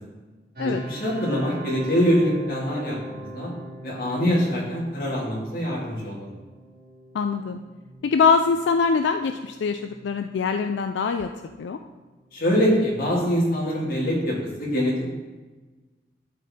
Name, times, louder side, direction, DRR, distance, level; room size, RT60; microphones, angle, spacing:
sound 1, 0.5-13.4, right 1 dB, 55° right, 1.8 m, -43 dB
voice 1, 0.9-3.5 3.8-6.3 12.3-15.0, equal, 55° left, -4 dB, 2.1 m, -24 dB
voice 2, 7.1-7.6 8.0-11.3 11.6-11.8, left 5 dB, 85° left, 7 dB, 0.3 m, -23 dB
12.0 x 4.3 x 3.6 m, 1.3 s
head